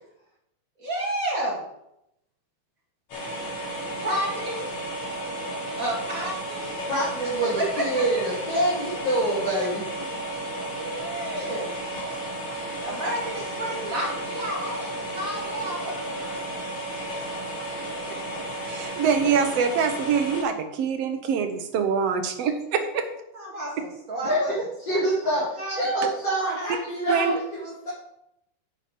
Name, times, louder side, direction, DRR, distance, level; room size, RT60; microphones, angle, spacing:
voice 1, 0.8-1.7 3.9-4.7 5.8-6.7 7.6-8.2 10.9-11.7 12.8-16.5 23.3-25.0 25.2-25.8, right 1 dB, 25° right, -4 dB, 2.9 m, -31 dB
sound 1, 3.1-20.4, right 1 dB, 60° left, 4.6 m, -33 dB
voice 2, 6.9-9.8 10.6-10.9 24.2-27.9, right 1 dB, 30° left, -11 dB, 4.5 m, -26 dB
voice 3, 18.6-23.0 27.1-27.4, right 6 dB, 65° right, 6 dB, 1.8 m, -24 dB
8.9 x 8.3 x 5.2 m, 0.81 s
omnidirectional pair, 3.7 m